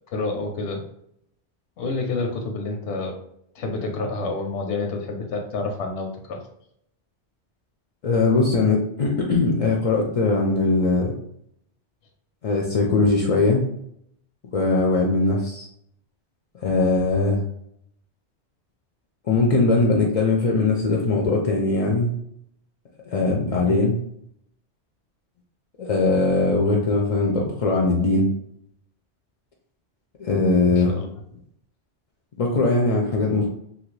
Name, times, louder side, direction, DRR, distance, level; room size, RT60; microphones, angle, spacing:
voice 1, 0.1-0.8 1.8-3.2 3.5-6.4 23.6-23.9 30.7-31.1, left 3 dB, 90° left, 3 dB, 0.9 m, -28 dB
voice 2, 8.0-11.1 12.4-13.6 14.5-15.7 16.6-17.4 19.3-22.1 23.1-24.0 25.8-28.3 30.2-31.0 32.4-33.5, left 3 dB, 65° left, 0 dB, 0.3 m, -20 dB
2.9 x 2.5 x 3.1 m, 0.72 s
omnidirectional pair, 1.1 m